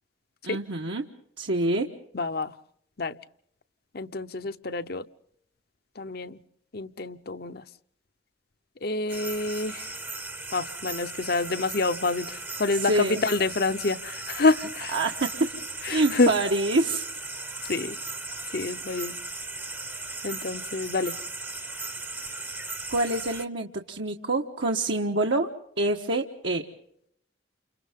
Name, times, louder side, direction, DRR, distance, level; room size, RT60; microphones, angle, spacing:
voice 1, 0.4-1.1 1.4-1.9 12.7-13.2 14.9-15.5 15.9-17.0 22.9-25.5 25.8-26.6, right 2 dB, 70° right, 1 dB, 1.4 m, -26 dB
voice 2, 2.1-2.5 3.0-3.2 3.9-5.0 6.0-6.4 6.7-7.6 8.8-9.9 10.5-14.9 15.9-16.3 17.7-18.0 18.5-19.2 20.2-21.2, left 3 dB, 55° left, 11 dB, 0.8 m, -27 dB
sound 1, 9.1-23.4, right 3 dB, 10° right, 0.8 m, -37 dB
30.0 x 28.0 x 3.7 m, 0.70 s
head